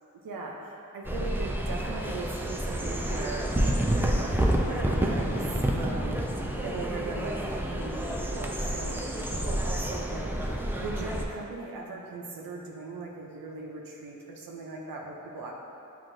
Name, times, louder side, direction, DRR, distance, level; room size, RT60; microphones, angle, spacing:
voice 1, 0.2-4.0 4.3-5.4 5.7-6.2 6.6-15.5, right 3 dB, 85° right, -1 dB, 0.5 m, -39 dB
sound 1, 1.0-11.2, right 1 dB, 5° right, 0.4 m, -29 dB
7.0 x 2.5 x 2.6 m, 2.7 s
cardioid pair, 55°, 33 cm